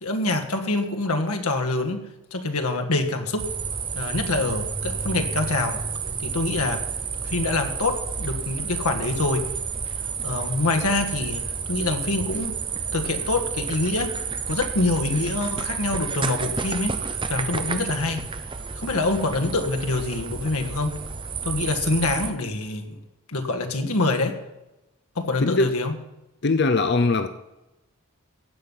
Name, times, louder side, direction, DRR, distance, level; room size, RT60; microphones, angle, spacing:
voice 1, 0.0-3.5 3.9-5.9 6.2-6.9 7.3-9.5 10.2-12.6 12.9-14.2 14.5-18.2 18.8-21.0 21.4-23.0 23.3-24.4 25.2-26.0, left 2 dB, 85° left, 1.7 m, -25 dB
sound 1, 3.4-22.3, right 5 dB, 20° right, 0.7 m, -30 dB
voice 2, 25.4-25.8 26.4-27.3, left 3 dB, 50° left, 0.6 m, -21 dB
15.5 x 5.6 x 9.7 m
head